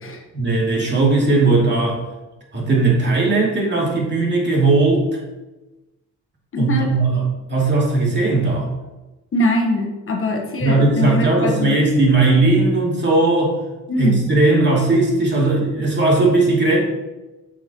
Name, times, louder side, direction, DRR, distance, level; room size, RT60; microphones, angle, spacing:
voice 1, 0.3-2.0 2.5-5.1 6.6-7.2 7.5-8.7 10.6-13.6 14.0-16.8, right 3 dB, 35° right, -3 dB, 2.6 m, -17 dB
voice 2, 6.5-6.9 9.3-11.8 13.9-14.2, left 1 dB, 45° left, 2 dB, 1.3 m, -22 dB
8.8 x 6.1 x 3.0 m, 1.1 s
cardioid pair, 90°, 30 cm